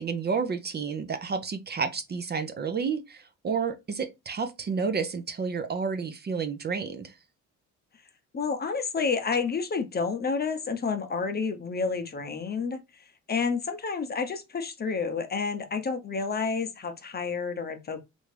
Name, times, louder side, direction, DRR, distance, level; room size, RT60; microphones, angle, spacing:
voice 1, 0.0-7.1, right 5 dB, 35° right, 0.5 m, -30 dB
voice 2, 8.3-18.0, left 5 dB, 30° left, 0.7 m, -30 dB
3.3 x 2.6 x 3.2 m
cardioid pair, 90°, 30 cm